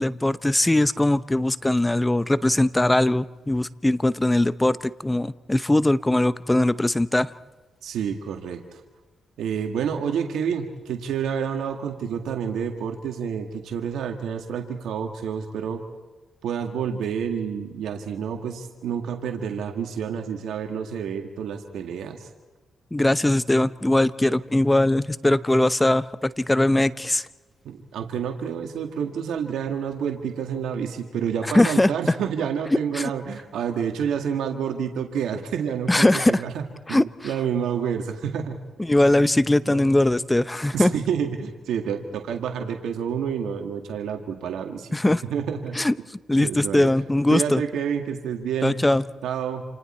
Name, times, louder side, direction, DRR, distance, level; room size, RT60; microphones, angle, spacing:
voice 1, 0.0-7.3 22.9-27.3 31.5-32.2 32.9-33.1 35.9-36.4 36.9-37.3 38.8-40.9 44.9-45.2 45.7-45.9 46.3-47.6 48.6-49.0, left 1 dB, 15° left, 15 dB, 0.8 m, -21 dB
voice 2, 7.8-8.8 9.4-15.8 16.4-22.3 27.7-36.6 36.9-38.6 39.7-39.9 40.7-44.9 45.3-45.8 46.4-46.9 47.3-48.7 49.2-49.6, right 7 dB, 90° right, 4 dB, 1.9 m, -29 dB
28.5 x 28.5 x 4.4 m, 1.2 s
cardioid pair, 75°, 0 cm